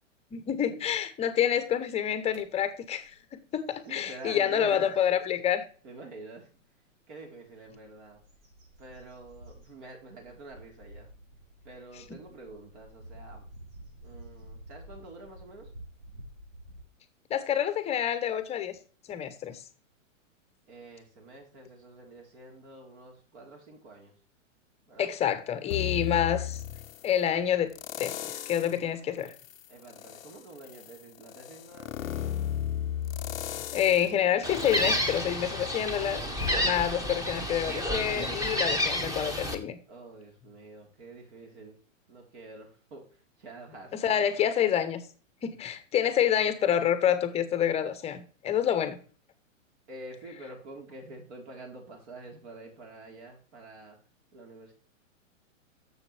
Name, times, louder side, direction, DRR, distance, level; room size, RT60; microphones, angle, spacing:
voice 1, 0.3-5.6 17.3-18.8 19.1-19.6 25.0-26.6 27.0-27.7 28.0-29.3 33.7-36.3 36.6-39.8 43.9-45.0 45.4-49.0, left 9 dB, 15° left, 11 dB, 0.8 m, -28 dB
sound 1, 2.3-2.4 2.9-3.2 3.5-5.0 5.6-5.7 7.4-16.8, right 1 dB, 80° right, 4.7 m, -50 dB
voice 2, 3.8-4.9 5.8-6.5 7.1-8.2 8.8-11.1 11.6-13.5 14.0-15.7 20.7-24.1 24.9-25.1 29.7-32.5 39.9-41.8 42.1-44.2 49.9-54.0 54.3-54.7, right 2 dB, 55° right, 1 dB, 3.9 m, -47 dB
sound 2, 25.7-27.1 27.7-28.8 29.3-36.0 36.4-36.5, left 10 dB, 90° left, 0.6 m, -35 dB
Gull seagull, 34.4-39.6, left 1 dB, 10° right, 1.1 m, -30 dB
9.8 x 7.2 x 3.3 m, 0.40 s
hypercardioid pair, 130°, 39 cm